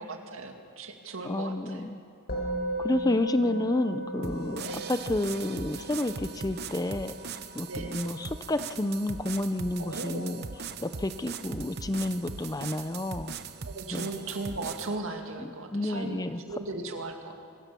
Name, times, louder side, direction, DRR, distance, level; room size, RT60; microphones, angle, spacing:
voice 1, 0.0-1.9 4.6-4.9 7.7-8.1 9.8-10.4 13.6-17.3, right 2 dB, 70° right, 4 dB, 2.2 m, -37 dB
voice 2, 1.2-2.0 2.8-10.4 10.8-13.3 13.9-14.1 15.4-16.4, left 1 dB, 15° left, 11 dB, 0.5 m, -30 dB
Musical instrument, 2.3-11.8, right 1 dB, 50° left, 3.9 m, -38 dB
sound 1, 4.2-14.9, right 5 dB, 50° right, 0.9 m, -40 dB
24.0 x 17.0 x 7.0 m, 2.2 s
head